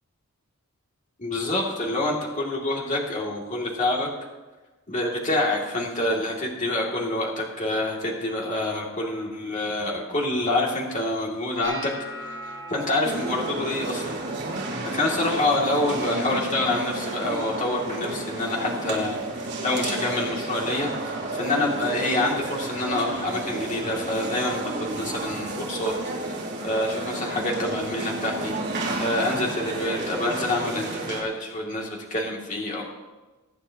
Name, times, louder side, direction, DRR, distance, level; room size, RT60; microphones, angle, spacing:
voice 1, 1.2-4.1 4.9-14.2 14.9-25.9 26.2-32.9, left 2 dB, 35° left, -2 dB, 2.4 m, -27 dB
sound 1, 11.6-17.7 18.0-18.5 18.9-19.4 20.0-20.2 22.0-22.1, equal, 15° left, 2.8 m, -43 dB
sound 2, 13.0-31.2, right 2 dB, 55° right, 2.8 m, -31 dB
22.5 x 9.3 x 2.9 m, 1.2 s
head